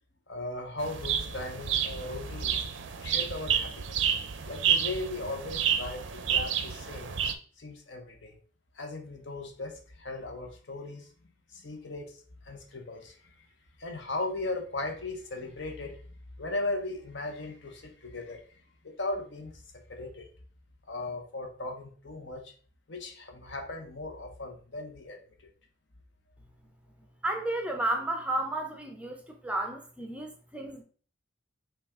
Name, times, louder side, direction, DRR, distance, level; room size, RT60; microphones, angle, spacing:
voice 1, 0.3-2.6 3.0-7.1 7.6-8.4 8.7-11.1 11.5-13.5 13.8-16.0 16.4-18.5 18.8-19.6 19.9-20.3 20.9-22.5 22.9-25.5, left 2 dB, 65° left, 0.9 m, -37 dB
sound 1, 0.8-7.3, right 8 dB, 70° right, 0.5 m, -30 dB
voice 2, 27.2-30.8, right 1 dB, 5° right, 0.5 m, -32 dB
5.7 x 2.4 x 3.5 m
head